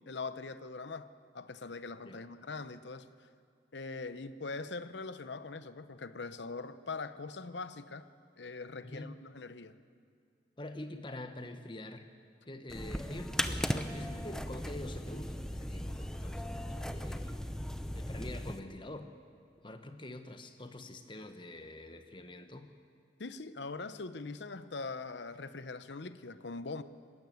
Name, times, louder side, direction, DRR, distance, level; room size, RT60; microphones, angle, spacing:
voice 1, 0.1-1.1 1.3-3.1 3.7-8.1 8.4-9.8 23.2-26.8, left 3 dB, 70° left, 13 dB, 0.8 m, -42 dB
voice 2, 8.8-9.1 10.6-12.1 12.5-17.5 17.9-19.1 19.6-22.7, left 1 dB, 25° left, 8 dB, 1.1 m, -46 dB
sound 1, 12.7-18.6, equal, 5° left, 0.6 m, -37 dB
19.5 x 15.5 x 9.4 m, 2.3 s
head